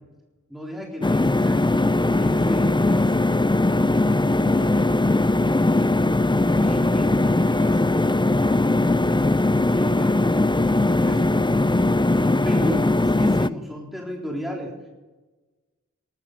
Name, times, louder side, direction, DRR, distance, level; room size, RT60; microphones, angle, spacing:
voice 1, 0.5-1.8 2.2-3.2 4.2-4.9 9.7-11.5 12.1-14.7, equal, ahead, -2 dB, 3.9 m, -34 dB
sound 1, 1.0-13.5, left 2 dB, 15° left, 0.5 m, -20 dB
voice 2, 6.6-9.0, equal, 25° right, 3 dB, 4.7 m, -44 dB
20.5 x 11.5 x 5.3 m, 1.2 s
wide cardioid pair, 45°, 31 cm